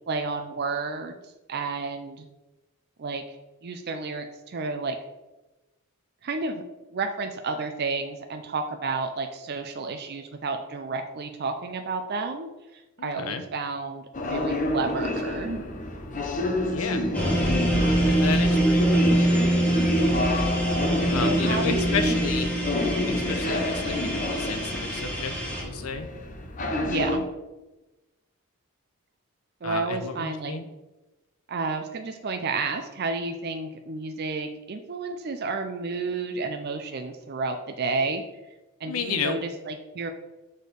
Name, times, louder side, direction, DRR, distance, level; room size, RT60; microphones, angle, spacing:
voice 1, 0.1-1.2 1.5-2.3 3.0-3.4 3.6-5.0 6.2-6.6 6.9-15.7 21.2-22.2 26.9-27.2 29.6-30.5 31.5-38.2 38.8-40.1, right 3 dB, 45° right, 5 dB, 0.4 m, -31 dB
voice 2, 13.0-13.4 16.7-17.0 18.0-19.2 21.1-22.5 23.1-26.1 29.6-30.7 38.9-39.4, left 5 dB, 75° left, 7 dB, 0.8 m, -32 dB
sound 1, 14.1-27.2, left 1 dB, 35° left, 0.8 m, -28 dB
sound 2, 17.1-25.6, right 1 dB, 5° left, 1.7 m, -25 dB
6.4 x 4.4 x 5.1 m, 1.1 s
head